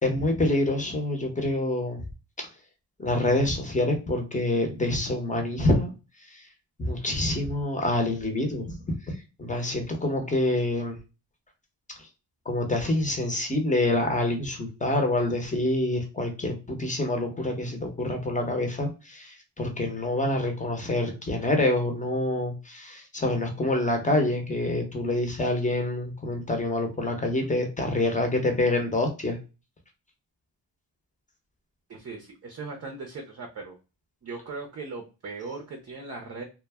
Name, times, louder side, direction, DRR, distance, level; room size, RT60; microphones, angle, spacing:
voice 1, 0.0-2.0 3.0-5.9 6.3-6.4 6.8-8.8 9.1-11.0 12.5-29.4, left 1 dB, 20° left, 4 dB, 0.8 m, -26 dB
voice 2, 31.9-33.8 34.2-36.4, right 3 dB, 35° right, 2 dB, 0.6 m, -38 dB
2.2 x 2.0 x 3.4 m, 0.30 s
cardioid pair, 80°, 43 cm